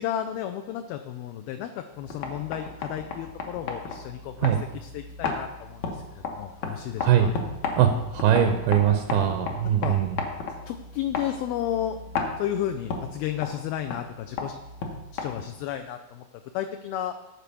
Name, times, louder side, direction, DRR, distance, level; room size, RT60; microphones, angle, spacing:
voice 1, 0.0-7.3 9.8-10.0 10.7-12.0 12.4-14.6 15.1-16.3 16.5-17.1, left 11 dB, 80° left, 7 dB, 2.3 m, -32 dB
sound 1, 1.9-15.7, left 4 dB, 65° left, 2.0 m, -35 dB
voice 2, 7.0-7.3 7.8-10.2, right 9 dB, 75° right, 5 dB, 2.4 m, -21 dB
14.0 x 4.7 x 6.9 m, 1.0 s
omnidirectional pair, 4.7 m